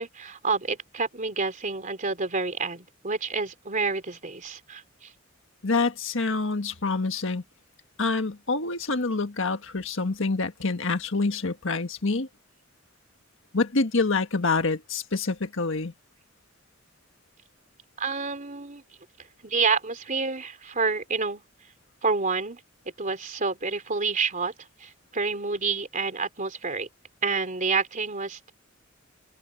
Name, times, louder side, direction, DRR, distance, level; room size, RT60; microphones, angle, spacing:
voice 1, 0.0-5.1 18.0-18.8 19.4-21.4 22.0-22.6 23.0-24.5 24.8-26.9 27.2-28.5, right 4 dB, 40° right, 3.5 m, -28 dB
voice 2, 5.6-7.4 8.0-12.3 13.5-15.9, left 3 dB, 65° left, 1.6 m, -26 dB
head